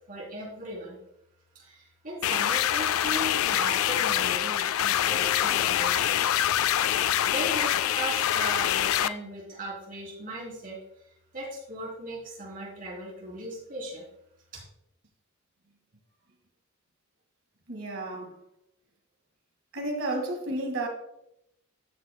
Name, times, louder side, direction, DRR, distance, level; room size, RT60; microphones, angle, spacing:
voice 1, 0.1-1.0 1.6-6.2 6.7-14.0 14.5-14.6, right 1 dB, 45° right, 3.5 m, -38 dB
sound 1, 2.2-9.1, left 11 dB, 85° left, 0.3 m, -25 dB
voice 2, 17.7-18.4 19.7-20.9, right 2 dB, 70° right, 2.0 m, -32 dB
13.5 x 6.7 x 2.2 m
head